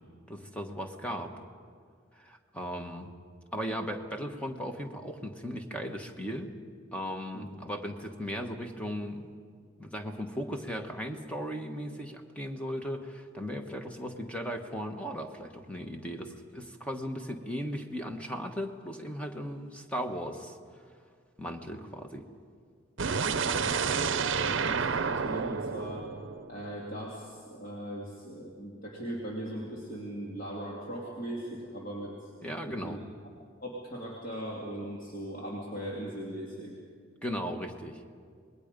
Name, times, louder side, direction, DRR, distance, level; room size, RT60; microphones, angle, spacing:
voice 1, 0.3-1.3 2.1-3.1 3.5-6.5 6.9-9.3 9.8-20.6 21.4-22.3 32.4-33.0 37.2-38.0, equal, 5° left, 4 dB, 1.2 m, -37 dB
sound 1, 23.0-27.0, right 5 dB, 65° right, 0.7 m, -30 dB
voice 2, 23.1-26.1 26.5-32.3 32.6-33.0 33.6-36.7, right 1 dB, 40° left, -4 dB, 2.7 m, -39 dB
27.0 x 20.5 x 5.2 m, 2.1 s
head